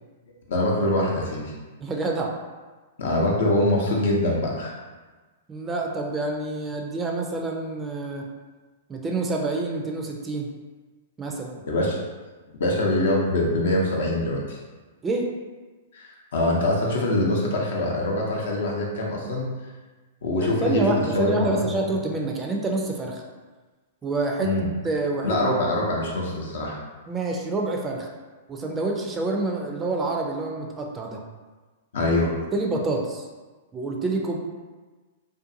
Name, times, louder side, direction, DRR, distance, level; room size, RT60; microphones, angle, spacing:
voice 1, 0.5-1.5 3.0-4.8 11.7-12.0 12.6-14.6 15.9-19.5 20.2-21.7 24.4-24.7 25.2-26.8 31.9-32.3, left 1 dB, 70° left, -2 dB, 0.6 m, -24 dB
voice 2, 1.8-2.3 5.5-8.2 8.9-10.5 11.2-11.6 15.0-15.3 20.4-23.2 24.0-24.5 24.8-25.4 27.1-28.1 28.5-31.2 32.5-33.3 33.7-34.4, right 2 dB, 20° right, 0 dB, 0.4 m, -27 dB
2.5 x 2.3 x 2.6 m, 1.3 s
hypercardioid pair, 120°, 0 cm